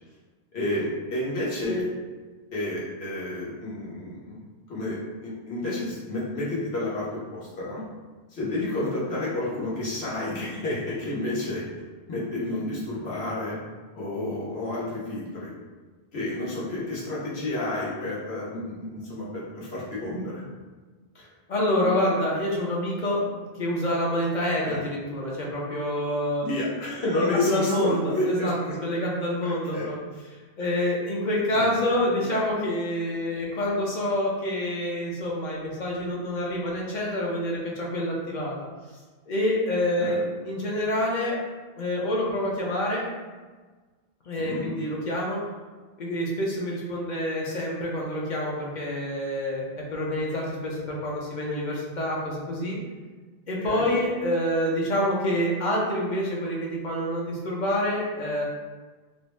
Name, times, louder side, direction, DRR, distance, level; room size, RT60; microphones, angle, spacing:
voice 1, 0.5-1.9 2.5-4.4 4.7-7.8 8.3-11.6 12.1-13.6 13.9-15.5 16.1-20.4 24.6-24.8 26.4-28.5 29.7-29.9 31.5-31.7 40.0-40.2 44.4-44.7 53.6-53.9, left 2 dB, 85° left, -7 dB, 1.2 m, -30 dB
voice 2, 21.2-26.4 27.2-30.0 30.6-38.6 39.3-41.4 41.8-43.0 44.3-45.4 46.0-52.8 53.5-58.4, left 1 dB, 55° left, -3 dB, 0.6 m, -27 dB
2.6 x 2.1 x 3.0 m, 1.4 s
omnidirectional pair, 1.0 m